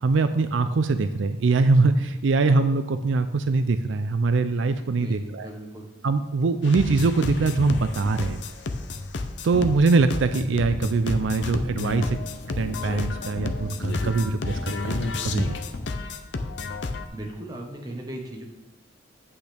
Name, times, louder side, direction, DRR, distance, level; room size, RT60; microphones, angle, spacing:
voice 1, 0.0-5.5 6.0-8.4 9.4-12.2 12.5-15.6, right 3 dB, 75° right, 10 dB, 0.4 m, -23 dB
voice 2, 5.0-5.9 17.1-18.4, right 1 dB, 20° right, 0 dB, 1.2 m, -37 dB
sound 1, 6.6-17.1, left 2 dB, 65° left, 0.6 m, -30 dB
8.6 x 8.1 x 3.5 m, 0.97 s
head